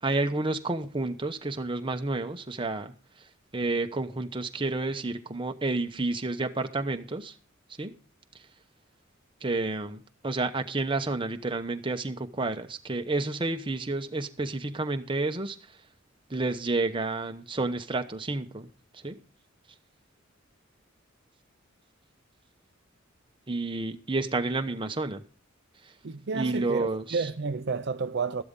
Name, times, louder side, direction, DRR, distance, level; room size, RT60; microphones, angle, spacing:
voice 1, 0.0-2.9 3.5-7.4 7.8-8.0 8.3-8.4 9.4-15.8 16.3-18.7 18.9-19.2 23.5-25.2 25.8-25.9 26.3-27.3, right 2 dB, 25° right, 0.9 m, -30 dB
voice 2, 26.0-28.4, right 4 dB, 60° right, 0.6 m, -31 dB
13.0 x 12.0 x 3.7 m
head